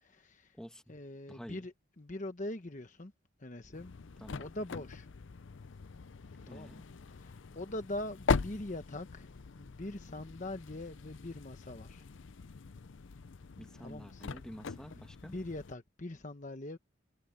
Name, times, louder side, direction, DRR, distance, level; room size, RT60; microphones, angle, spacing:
voice 1, 0.0-0.5 0.9-3.1 3.4-3.9 4.4-5.1 6.5-9.3 9.6-12.0 13.8-14.2 15.3-16.8, left 1 dB, 40° left, 1.0 m, -42 dB
voice 2, 0.5-1.0 1.3-1.7 4.2-4.5 6.5-6.8 13.6-15.4, equal, 5° left, 2.1 m, -49 dB
sound 1, 3.7-15.7, left 4 dB, 70° left, 0.6 m, -40 dB
head